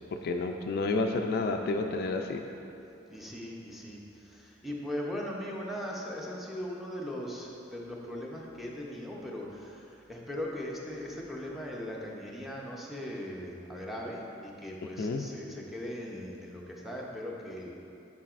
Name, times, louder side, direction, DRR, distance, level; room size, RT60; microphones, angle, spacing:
voice 1, 0.1-2.4 15.0-15.2, left 3 dB, 55° left, 4 dB, 0.3 m, -30 dB
voice 2, 3.1-17.8, left 1 dB, ahead, -3 dB, 0.7 m, -39 dB
7.2 x 6.1 x 2.5 m, 2.8 s
head